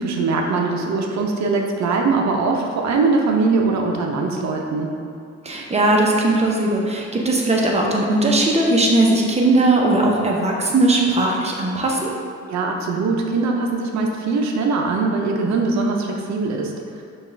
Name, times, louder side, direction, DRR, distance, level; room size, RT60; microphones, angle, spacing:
voice 1, 0.0-4.9 12.5-17.0, right 3 dB, 65° right, 1 dB, 0.6 m, -21 dB
voice 2, 5.4-12.1, right 2 dB, 20° right, -1 dB, 0.7 m, -18 dB
5.9 x 2.4 x 3.3 m, 2.4 s
cardioid pair, 90°, 30 cm